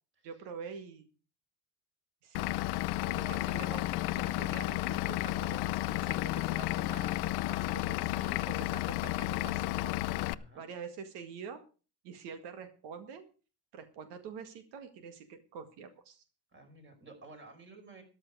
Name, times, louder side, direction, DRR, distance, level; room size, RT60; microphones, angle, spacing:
voice 1, 0.2-1.0 2.2-2.5 3.0-3.9 4.2-9.9 10.6-11.6 12.0-13.2 13.7-16.2, right 6 dB, 85° right, 8 dB, 2.0 m, -46 dB
Vehicle / Engine, 2.3-10.3, left 17 dB, 75° left, 0.7 m, -32 dB
voice 2, 3.0-3.5 10.3-10.7 16.5-18.0, right 2 dB, 30° right, 5 dB, 5.1 m, -52 dB
13.5 x 12.0 x 4.8 m, 0.36 s
cardioid pair, 150°, 40 cm